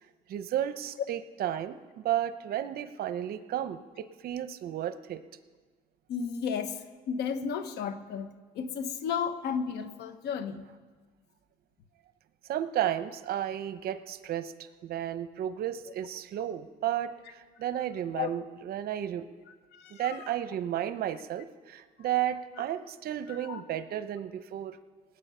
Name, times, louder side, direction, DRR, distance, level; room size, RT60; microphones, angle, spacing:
voice 1, 0.3-5.2 12.5-14.5 14.8-19.3 19.9-24.8, right 11 dB, 65° right, 12 dB, 0.7 m, -33 dB
voice 2, 6.1-6.7 7.1-8.3 8.6-10.6 18.1-18.3 19.8-20.2 23.3-23.6, left 7 dB, 80° left, 10 dB, 1.0 m, -33 dB
19.0 x 8.8 x 5.6 m, 1.4 s
cardioid pair, 110°, 17 cm